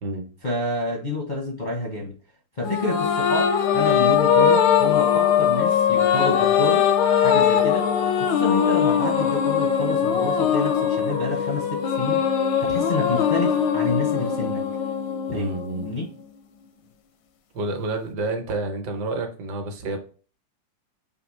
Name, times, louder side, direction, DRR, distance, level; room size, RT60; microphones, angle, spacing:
voice 1, 0.4-2.1 2.6-6.9 7.2-7.9 8.2-12.3 12.6-14.6 15.3-15.5 15.9-16.1, left 2 dB, 50° left, 0.5 m, -28 dB
sound 1, 2.6-16.3, left 8 dB, 85° left, 1.4 m, -21 dB
voice 2, 15.3-15.9 17.5-20.0, right 2 dB, 70° right, 1.5 m, -29 dB
4.9 x 2.8 x 3.1 m
omnidirectional pair, 2.0 m